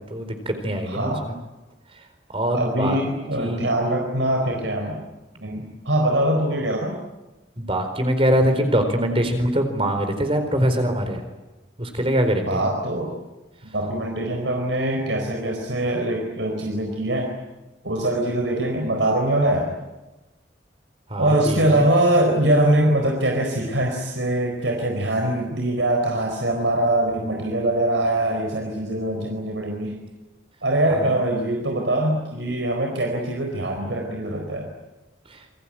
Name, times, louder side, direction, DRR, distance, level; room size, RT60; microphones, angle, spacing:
voice 1, 0.0-1.3 2.3-3.0 3.4-3.7 5.6-5.7 7.6-11.2 11.8-12.7 21.1-21.8 30.9-31.1 35.3-35.4, equal, 30° right, 6 dB, 4.3 m, -23 dB
voice 2, 0.9-1.3 2.5-5.0 5.4-7.0 12.5-13.1 13.7-17.3 17.8-19.7 21.2-30.0 30.6-34.7, right 1 dB, 80° right, 2 dB, 4.5 m, -23 dB
28.5 x 22.5 x 8.9 m, 1.1 s
head